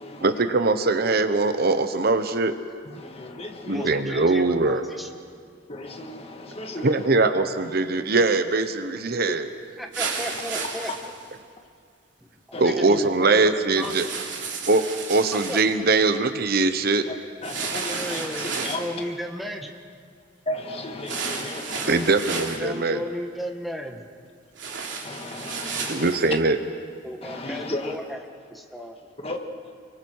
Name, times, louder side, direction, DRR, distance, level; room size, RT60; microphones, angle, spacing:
voice 1, 0.2-2.6 3.7-4.8 6.8-9.4 12.6-14.1 14.7-17.1 21.9-23.0 25.9-26.6, right 3 dB, 55° right, 9 dB, 1.0 m, -22 dB
voice 2, 2.9-3.9 5.7-7.1 12.5-12.7 17.1-17.2 17.4-18.8 20.5-22.2 25.0-26.1 27.2-27.9 29.2-29.4, left 1 dB, 30° left, 3 dB, 1.9 m, -34 dB
voice 3, 3.7-5.1 9.8-10.9 12.6-13.3 13.8-13.9 14.7-14.9 15.5-15.6 17.9-19.7 22.4-24.1 27.0-28.2 28.7-28.9, equal, ahead, 2 dB, 1.8 m, -34 dB
sound 1, 9.9-11.3 13.7-15.7 17.4-18.9 21.0-22.6 24.5-26.3, right 5 dB, 70° right, 3.3 m, -32 dB
29.5 x 23.5 x 4.8 m, 2.1 s
head